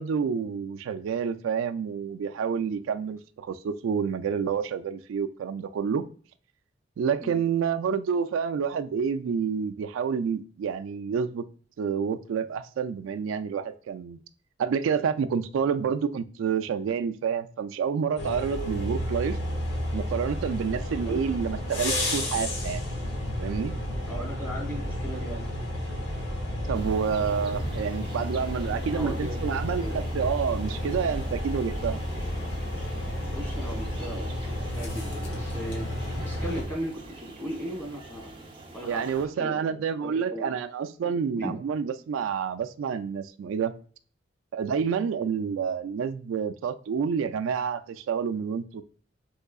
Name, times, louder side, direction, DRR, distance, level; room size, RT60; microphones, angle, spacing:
voice 1, 0.0-6.0 7.0-11.5 11.8-14.2 14.6-19.4 19.9-22.9 23.4-23.7 26.7-32.0 38.9-43.7 44.5-48.8, right 6 dB, 85° right, 9 dB, 0.3 m, -28 dB
sound 1, 18.2-36.6, left 1 dB, 70° left, 1.1 m, -31 dB
voice 2, 24.0-25.4 28.8-30.0 33.3-35.9 36.2-38.3 38.7-40.5 41.0-41.6, right 1 dB, 10° left, -3 dB, 1.6 m, -37 dB
sound 2, 26.7-39.3, right 2 dB, 25° right, 0.5 m, -44 dB
3.7 x 3.2 x 2.2 m, 0.42 s
head